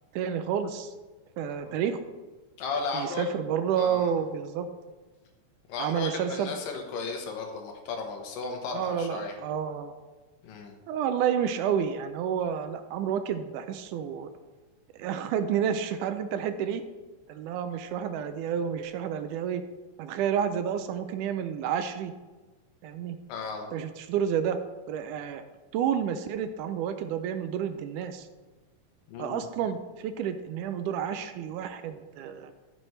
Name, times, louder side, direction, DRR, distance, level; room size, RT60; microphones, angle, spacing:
voice 1, 0.1-0.9 1.4-2.0 2.9-4.7 5.8-6.5 8.7-9.9 10.9-14.3 14.9-16.8 17.3-19.6 20.0-22.1 22.8-23.2 23.7-24.6 24.9-25.4 25.7-28.3 29.2-32.5, right 8 dB, 80° right, 9 dB, 2.0 m, -30 dB
voice 2, 2.6-3.3 3.8-4.1 5.7-9.3 10.4-10.8 23.3-23.7 29.1-29.5, left 4 dB, 90° left, 3 dB, 2.8 m, -35 dB
14.5 x 6.1 x 3.2 m, 1.2 s
omnidirectional pair, 3.8 m